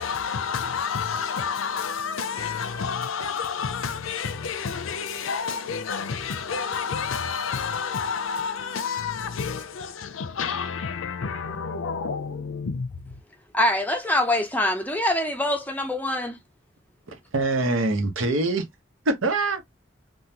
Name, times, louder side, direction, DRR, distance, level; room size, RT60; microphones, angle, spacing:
voice 1, 0.0-13.2, left 6 dB, 80° left, 0.5 m, -29 dB
voice 2, 13.5-16.4, left 1 dB, 10° left, 0.5 m, -24 dB
voice 3, 17.1-18.7 19.0-19.6, right 2 dB, 80° right, 1.0 m, -24 dB
3.7 x 2.3 x 2.8 m
head